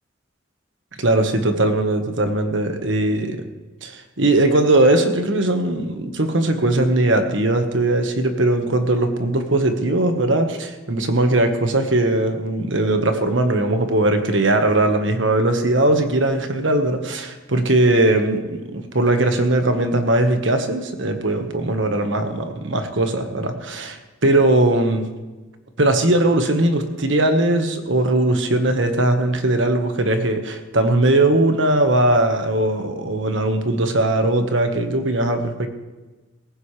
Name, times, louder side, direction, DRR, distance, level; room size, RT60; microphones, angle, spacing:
voice 1, 1.0-3.4 3.8-25.1 25.8-35.7, right 2 dB, 70° right, 6 dB, 1.5 m, -19 dB
18.0 x 15.5 x 3.4 m, 1.2 s
head